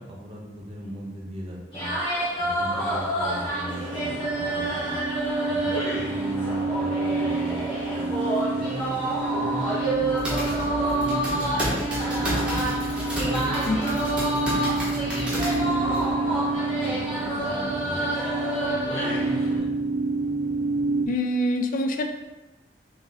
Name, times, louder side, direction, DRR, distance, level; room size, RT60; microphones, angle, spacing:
voice 1, 0.0-1.9 2.4-5.0 5.4-8.1 8.5-9.1 9.4-11.8 12.1-12.7 13.2-18.1 18.7-19.7, equal, 35° right, -3 dB, 0.8 m, -38 dB
sound 1, 1.7-19.6, right 1 dB, 30° left, 1.2 m, -29 dB
sound 2, 4.0-21.1, right 3 dB, 60° right, 0.6 m, -29 dB
sound 3, 9.9-16.1, equal, 5° right, 1.1 m, -32 dB
voice 2, 21.1-22.1, left 1 dB, 50° left, 6 dB, 0.3 m, -25 dB
3.9 x 2.5 x 3.9 m, 1.1 s
head